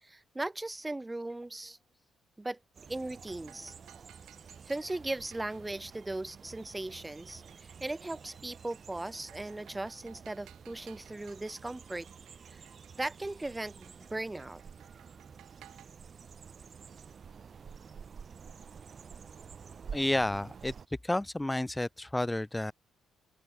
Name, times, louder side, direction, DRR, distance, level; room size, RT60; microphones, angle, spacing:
voice 1, 0.0-1.8 2.4-2.6 2.9-3.7 4.6-7.4 7.8-12.1 12.5-12.6 13.0-14.6, right 2 dB, 15° right, 2.0 m, -38 dB
sound 1, 2.7-20.9, right 6 dB, 45° right, 3.0 m, -50 dB
sound 2, 3.1-15.9, right 14 dB, 85° right, 6.3 m, -61 dB
voice 2, 19.9-20.7 21.0-22.7, left 1 dB, 10° left, 0.4 m, -31 dB
open air
cardioid pair, 90°, 0 cm